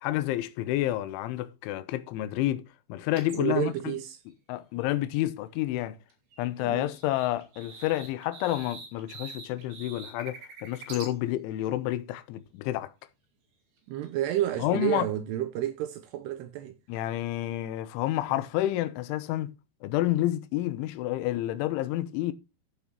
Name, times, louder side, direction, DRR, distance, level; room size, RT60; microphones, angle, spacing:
voice 1, 0.0-3.7 4.5-6.0 6.4-12.9 14.6-15.1 16.9-19.5 19.8-22.3, left 15 dB, 80° left, 3.2 m, -29 dB
sound 1, 3.2-3.5 5.8-5.9 6.1-11.1 13.8-14.4, right 4 dB, 60° right, 4.2 m, -45 dB
voice 2, 3.3-4.2 6.6-6.9 13.9-16.8, right 13 dB, 85° right, 2.3 m, -30 dB
15.0 x 6.2 x 3.0 m
omnidirectional pair, 5.6 m